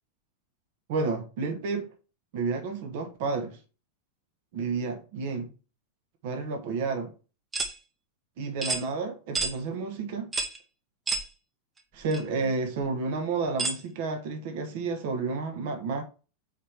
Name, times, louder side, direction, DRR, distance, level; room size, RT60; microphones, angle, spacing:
voice 1, 0.9-1.9 2.3-3.6 4.5-5.5 6.2-7.1 8.4-10.3 11.9-16.0, right 4 dB, 50° right, 1.2 m, -31 dB
sound 1, 7.5-7.7 8.6-8.8 9.3-9.5 10.3-10.6 11.1-11.3 12.1-12.2 13.6-13.8, right 3 dB, 15° right, 1.0 m, -29 dB
5.0 x 4.4 x 4.5 m
figure-of-eight pair, 90°, 0 cm